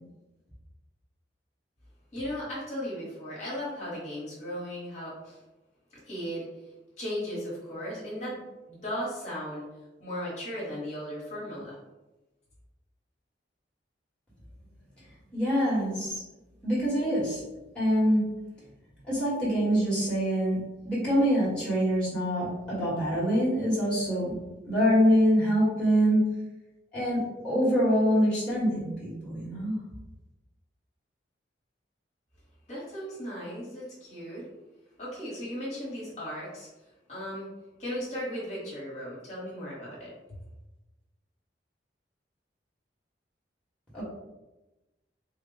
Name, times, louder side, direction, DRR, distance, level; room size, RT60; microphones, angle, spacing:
voice 1, 2.1-5.4 6.0-6.5 7.0-8.4 8.7-9.7 10.0-11.8 32.7-34.5 35.0-36.7 37.1-37.5 37.8-40.1, equal, 40° left, -6 dB, 1.2 m, -36 dB
voice 2, 15.3-16.2 16.6-17.4 17.7-18.2 19.0-24.4 24.6-26.2 26.9-29.8 43.9-44.0, equal, 5° left, -9 dB, 1.2 m, -25 dB
3.5 x 2.3 x 3.9 m, 1.0 s
head